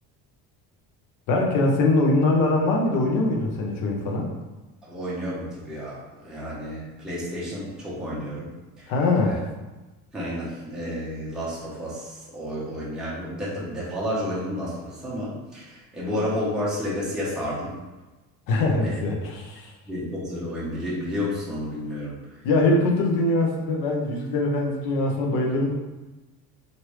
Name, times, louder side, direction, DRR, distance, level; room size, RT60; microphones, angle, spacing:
voice 1, 1.3-4.3 8.9-9.4 18.5-19.7 22.4-25.7, left 2 dB, 65° left, 0 dB, 0.7 m, -22 dB
voice 2, 4.8-8.5 8.8-8.9 9.2-9.4 10.1-17.8 18.8-19.0 19.9-22.4, equal, ahead, -8 dB, 0.7 m, -31 dB
3.0 x 2.6 x 3.0 m, 1.1 s
cardioid pair, 145°, 34 cm